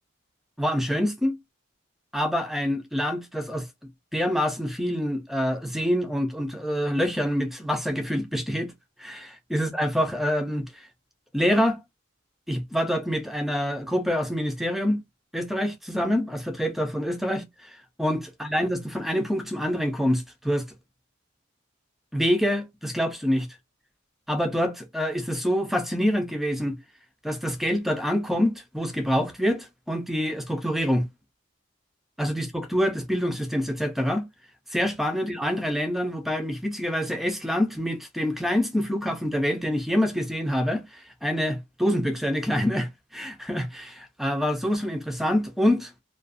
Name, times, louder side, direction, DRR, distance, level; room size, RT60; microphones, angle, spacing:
voice 1, 0.6-1.4 2.1-3.7 4.1-8.7 9.0-10.7 11.3-11.8 12.5-15.0 15.3-17.7 18.0-20.7 22.1-23.5 24.3-26.8 27.2-31.1 32.2-34.2 34.7-45.9, equal, ahead, 0.3 m, -26 dB
2.4 x 2.3 x 2.4 m
head